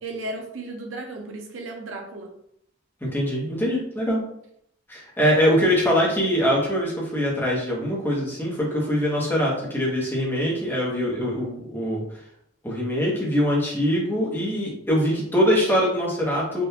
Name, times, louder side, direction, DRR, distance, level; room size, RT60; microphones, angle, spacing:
voice 1, 0.0-2.3, right 2 dB, 85° right, 3 dB, 0.7 m, -34 dB
voice 2, 3.1-4.2 4.9-12.0 12.6-16.6, equal, 10° left, -5 dB, 1.1 m, -23 dB
3.6 x 2.6 x 2.8 m, 0.73 s
head